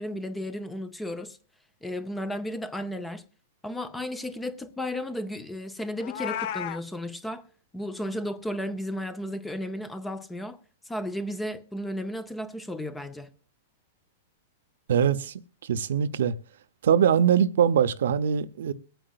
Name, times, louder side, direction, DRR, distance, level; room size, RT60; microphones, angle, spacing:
voice 1, 0.0-1.4 1.8-3.2 3.6-7.5 7.7-10.6 10.9-13.3, left 1 dB, 5° left, 0.6 m, -34 dB
Meow, 6.0-6.8, left 10 dB, 55° left, 0.5 m, -32 dB
voice 2, 14.9-16.3 16.8-18.7, right 8 dB, 75° right, 0.7 m, -23 dB
22.5 x 9.0 x 2.4 m
hypercardioid pair, 135°, 0 cm